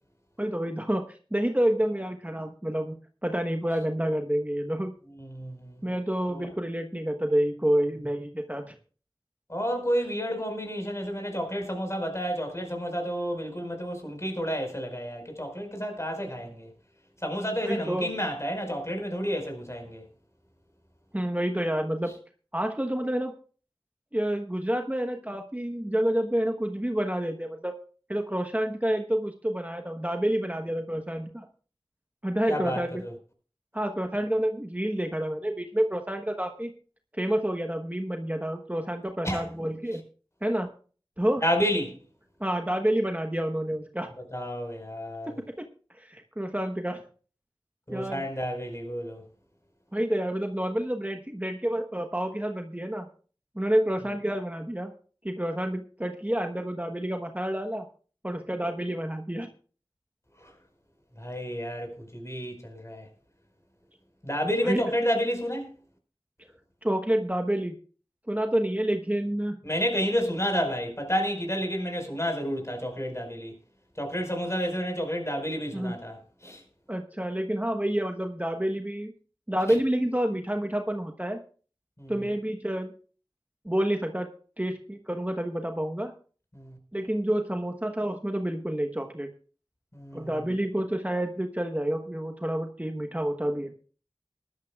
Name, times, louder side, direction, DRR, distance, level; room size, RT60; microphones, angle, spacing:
voice 1, 0.4-4.9 5.8-8.7 17.6-18.1 21.1-22.1 22.5-23.3 24.1-27.7 28.1-31.5 32.2-33.0 33.7-36.7 37.1-40.0 40.4-40.7 41.2-41.4 42.4-44.1 46.0-47.0 47.9-48.2 49.9-53.0 53.5-54.9 55.2-57.8 58.2-59.5 64.6-64.8 66.8-67.8 68.3-69.6 75.7-75.9 76.9-79.1 79.5-81.4 82.1-82.9 83.6-84.3 84.6-86.1 86.9-89.3 90.1-93.7, right 1 dB, 15° right, 1.1 m, -28 dB
voice 2, 5.2-5.8 6.3-6.5 9.5-16.7 17.2-20.0 32.5-33.1 39.2-39.5 41.4-42.0 44.3-45.3 47.9-49.2 60.4-60.5 61.2-63.1 64.2-65.7 69.6-73.5 74.0-76.6 82.0-82.1 86.5-86.7 89.9-90.3, equal, 35° left, 4.8 m, -30 dB
20.0 x 12.0 x 2.4 m
wide cardioid pair, 40°, 9 cm